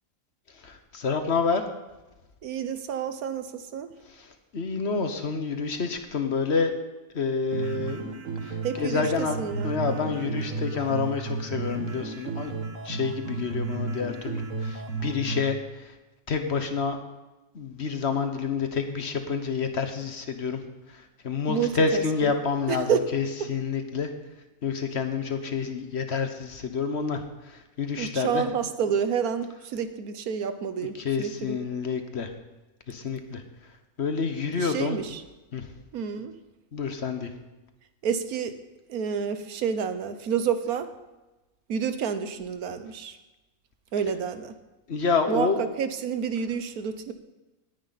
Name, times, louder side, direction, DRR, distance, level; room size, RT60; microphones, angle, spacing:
voice 1, 0.5-1.6 4.0-6.7 7.1-8.0 8.4-9.4 9.6-12.5 12.8-15.9 16.3-17.0 17.5-20.6 20.9-24.1 24.6-28.4 31.0-32.3 32.9-33.4 34.0-35.0 35.5-35.7 36.7-37.3 44.9-45.6, left 5 dB, 50° left, 7 dB, 1.3 m, -28 dB
voice 2, 2.4-3.9 8.6-9.7 21.5-22.3 22.7-23.0 23.4-23.5 28.0-31.6 34.5-35.2 35.9-36.3 38.0-38.6 38.9-40.9 41.7-43.2 43.9-44.5 45.3-47.1, right 7 dB, 85° right, 10 dB, 1.4 m, -29 dB
sound 1, 7.5-15.5, right 3 dB, 60° right, 1.7 m, -33 dB
18.0 x 10.0 x 4.1 m, 1.1 s
omnidirectional pair, 1.5 m